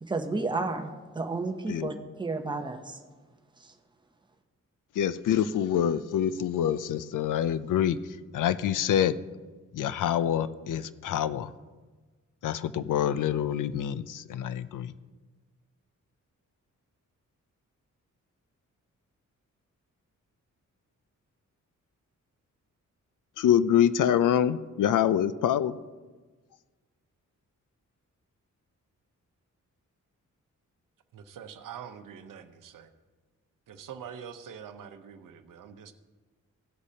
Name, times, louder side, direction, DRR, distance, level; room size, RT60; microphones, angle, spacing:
voice 1, 0.0-3.0 3.6-3.7, right 3 dB, 15° right, 5 dB, 0.7 m, -32 dB
voice 2, 5.0-8.0 8.3-9.1 9.7-11.5 12.4-14.9 23.4-25.8, left 10 dB, 75° left, 14 dB, 0.5 m, -26 dB
voice 3, 31.1-32.9 33.7-35.9, right 8 dB, 90° right, 9 dB, 0.8 m, -44 dB
17.0 x 8.1 x 2.8 m, 1.4 s
wide cardioid pair, 175°, 31 cm